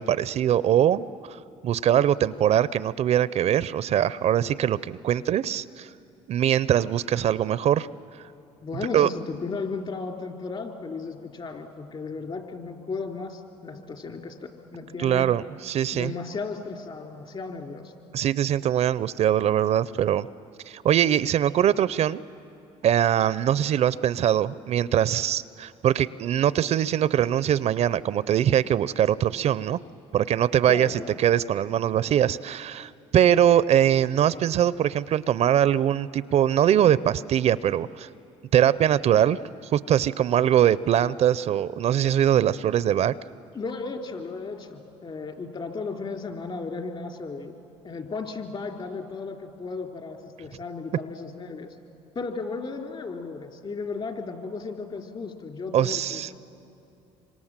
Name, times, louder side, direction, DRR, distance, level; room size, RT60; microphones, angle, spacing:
voice 1, 0.0-1.4 1.6-5.9 6.3-7.9 8.9-9.1 15.0-16.1 18.1-20.3 20.7-22.2 22.8-29.8 30.1-38.1 38.5-39.4 39.7-43.1 55.7-56.3, right 10 dB, 55° right, 18 dB, 0.5 m, -22 dB
voice 2, 8.6-15.3 15.9-17.9 30.7-31.2 43.5-47.5 47.8-51.8 52.1-56.3, left 4 dB, 40° left, 4 dB, 3.2 m, -35 dB
26.5 x 25.0 x 7.4 m, 2.8 s
supercardioid pair, 85°, 13 cm